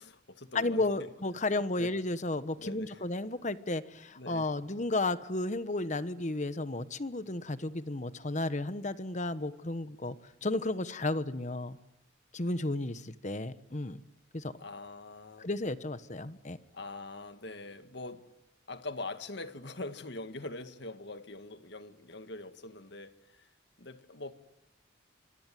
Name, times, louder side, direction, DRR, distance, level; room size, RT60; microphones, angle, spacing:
voice 1, 0.0-1.1 1.4-1.9 2.6-3.0 4.2-4.5 14.6-15.5 16.7-18.3 18.7-23.5 23.8-24.3, left 2 dB, 60° left, 1.9 m, -43 dB
voice 2, 0.5-10.2 10.4-11.8 12.3-14.0 14.3-14.5 15.4-16.6, left 2 dB, 35° left, 1.2 m, -33 dB
26.0 x 22.5 x 9.3 m
head